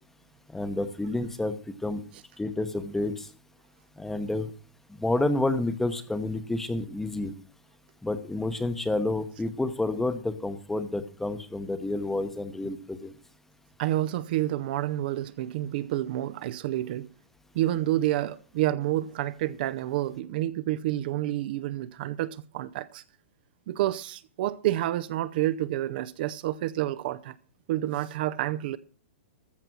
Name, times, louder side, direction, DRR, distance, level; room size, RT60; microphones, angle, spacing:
voice 1, 0.5-2.0 2.4-3.3 4.0-4.5 5.0-7.3 8.0-13.1, left 2 dB, 5° left, 0.9 m, -29 dB
voice 2, 13.8-17.1 17.5-23.0 23.7-27.4 27.7-28.8, right 14 dB, 50° right, 0.6 m, -29 dB
14.0 x 6.7 x 6.1 m
hypercardioid pair, 140°, 6 cm